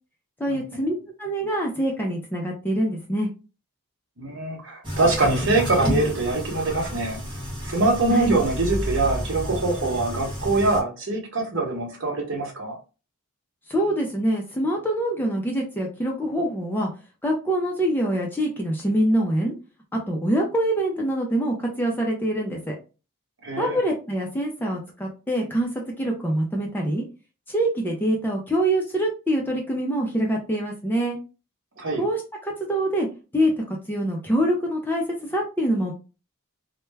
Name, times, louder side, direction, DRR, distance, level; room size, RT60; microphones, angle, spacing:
voice 1, 0.4-3.3 8.1-8.4 13.7-16.9 17.2-19.5 20.1-22.7 23.6-27.0 27.5-31.2 32.0-33.1 33.3-35.9, right 1 dB, 10° left, 0 dB, 0.4 m, -25 dB
voice 2, 4.2-7.2 7.6-12.8 23.4-23.8 31.8-32.0, right 2 dB, 55° right, 1 dB, 0.9 m, -24 dB
sound 1, 4.8-10.8, equal, 20° right, 0.9 m, -30 dB
2.2 x 2.1 x 3.2 m, 0.32 s
head